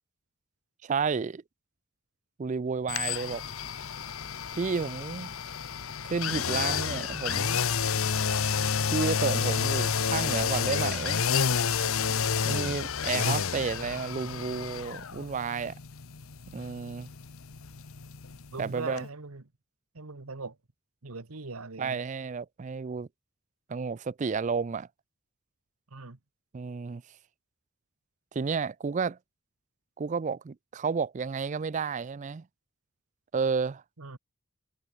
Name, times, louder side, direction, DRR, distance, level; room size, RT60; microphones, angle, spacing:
voice 1, 0.8-1.4 2.4-3.4 4.5-5.3 6.1-7.6 8.9-11.2 12.4-15.8 16.5-17.1 18.6-19.0 21.8-23.1 23.7-24.9 26.5-27.0 28.3-29.2 30.0-32.4 33.3-33.8, right 5 dB, 35° right, 0.4 m, -31 dB
sound 1, 2.9-18.7 19.0-19.1, left 6 dB, 70° left, 1.0 m, -30 dB
voice 2, 18.5-19.4 19.9-20.6 21.0-22.0 25.9-26.2 34.0-34.2, right 3 dB, 80° right, 1.4 m, -40 dB
head